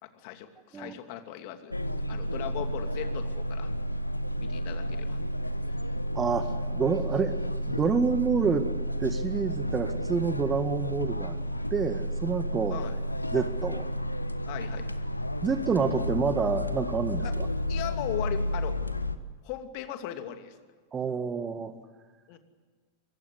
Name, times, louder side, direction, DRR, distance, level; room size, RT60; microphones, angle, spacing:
voice 1, 0.0-1.7 2.1-3.7 4.4-5.2 12.7-13.0 14.5-14.9 17.2-17.4 17.7-18.8 19.4-20.6 22.3-22.4, left 11 dB, 45° left, 7 dB, 2.6 m, -38 dB
sound 1, 1.7-19.2, equal, 85° left, 1.2 m, -31 dB
voice 2, 6.1-6.5 6.7-7.4 7.7-8.7 9.0-11.4 11.7-12.8 13.3-13.9 15.4-17.5 20.9-21.7, right 5 dB, 20° right, 10 dB, 1.9 m, -28 dB
26.5 x 23.5 x 8.2 m, 1.5 s
figure-of-eight pair, 90°, 0 cm